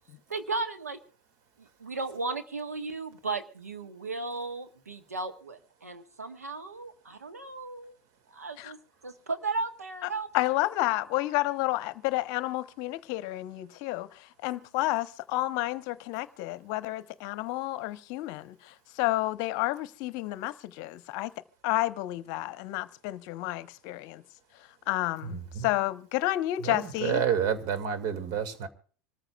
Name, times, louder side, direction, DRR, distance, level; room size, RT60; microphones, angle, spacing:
voice 1, 0.3-1.0 1.6-7.9 8.3-8.8 9.0-10.3, right 3 dB, 90° right, 1.3 m, -35 dB
voice 2, 10.3-21.3 21.6-24.2 24.9-27.2, left 17 dB, 50° left, 0.8 m, -30 dB
voice 3, 25.3-25.7 26.6-28.7, right 8 dB, 50° right, 2.2 m, -29 dB
26.5 x 14.0 x 2.3 m
hypercardioid pair, 85°, 8 cm